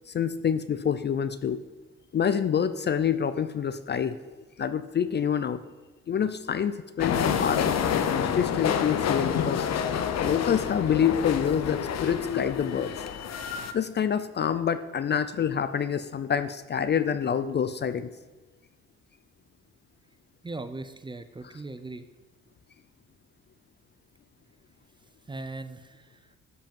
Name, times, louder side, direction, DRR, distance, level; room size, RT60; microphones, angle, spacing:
voice 1, 0.1-1.6 2.1-4.2 4.6-5.6 6.1-9.7 10.2-12.9 13.7-18.1, left 8 dB, 35° left, 13 dB, 0.4 m, -27 dB
sound 1, 7.0-13.7, left 8 dB, 60° left, 0.8 m, -28 dB
voice 2, 20.4-22.1 25.3-26.2, right 2 dB, 15° right, 11 dB, 0.5 m, -39 dB
12.5 x 5.2 x 5.3 m, 1.2 s
cardioid pair, 90°, 30 cm